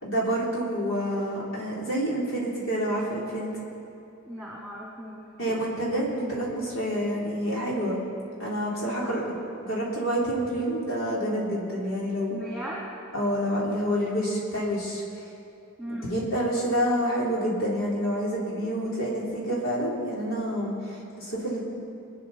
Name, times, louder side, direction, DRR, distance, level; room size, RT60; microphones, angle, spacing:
voice 1, 0.0-3.5 5.4-8.0 8.4-9.3 9.6-12.4 13.1-15.0 16.0-21.6, equal, 80° left, -5 dB, 3.6 m, -28 dB
voice 2, 4.2-5.2 8.7-9.1 12.3-12.9 15.8-16.1, equal, ahead, -6 dB, 2.2 m, -37 dB
24.0 x 9.8 x 4.3 m, 2.8 s
head